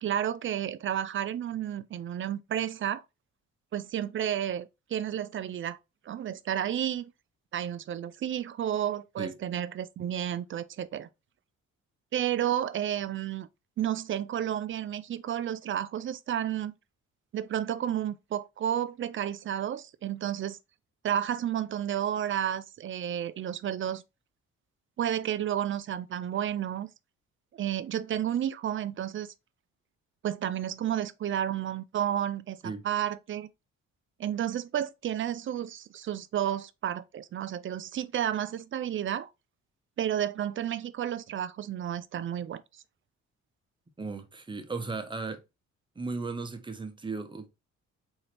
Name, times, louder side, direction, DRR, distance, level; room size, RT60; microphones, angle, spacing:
voice 1, 0.0-3.0 3.7-5.8 6.1-7.1 7.5-11.1 12.1-13.5 13.8-16.7 17.3-20.6 21.0-24.0 25.0-26.9 27.5-29.3 30.2-33.5 34.2-39.3 40.0-42.6, right 10 dB, 45° right, 0.4 m, -31 dB
voice 2, 44.0-45.4 46.0-47.5, right 4 dB, 15° right, 0.7 m, -36 dB
3.8 x 2.7 x 3.3 m
cardioid pair, 90°, 30 cm